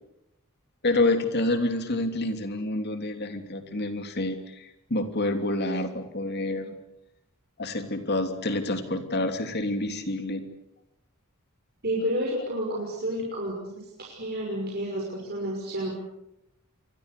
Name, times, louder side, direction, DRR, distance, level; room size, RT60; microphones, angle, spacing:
voice 1, 0.8-6.8 7.6-10.4, left 2 dB, 50° left, 7 dB, 3.1 m, -28 dB
voice 2, 11.8-16.0, equal, 45° right, -1 dB, 6.0 m, -30 dB
28.5 x 24.0 x 6.9 m, 0.85 s
head